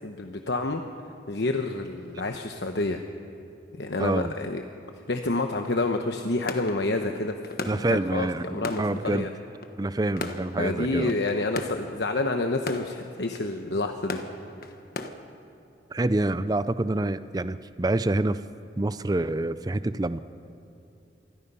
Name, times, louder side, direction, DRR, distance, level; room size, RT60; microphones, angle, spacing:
voice 1, 0.0-0.8 1.3-3.0 3.8-4.6 5.1-7.3 7.7-9.3 10.6-14.2, left 2 dB, 75° left, 5 dB, 1.0 m, -28 dB
voice 2, 4.0-4.3 7.6-9.3 9.8-11.1 15.9-18.4 18.8-20.2, right 2 dB, 20° right, 14 dB, 0.4 m, -27 dB
sound 1, 6.5-15.1, left 2 dB, 55° left, 1.2 m, -38 dB
26.5 x 20.5 x 5.6 m, 2.8 s
head